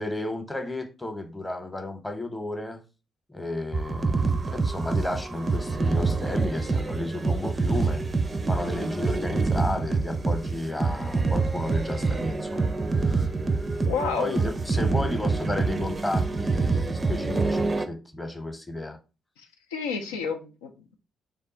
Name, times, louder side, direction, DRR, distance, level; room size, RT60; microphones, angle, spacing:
voice 1, 0.0-2.8 3.3-8.0 8.5-12.7 13.0-13.3 14.2-19.0, left 2 dB, 15° left, 0.8 m, -33 dB
sound 1, 3.7-17.9, right 3 dB, 30° right, 0.4 m, -26 dB
voice 2, 13.8-14.4 19.7-20.9, left 5 dB, 85° left, 0.4 m, -30 dB
3.4 x 2.3 x 3.8 m
hypercardioid pair, 45°, 0 cm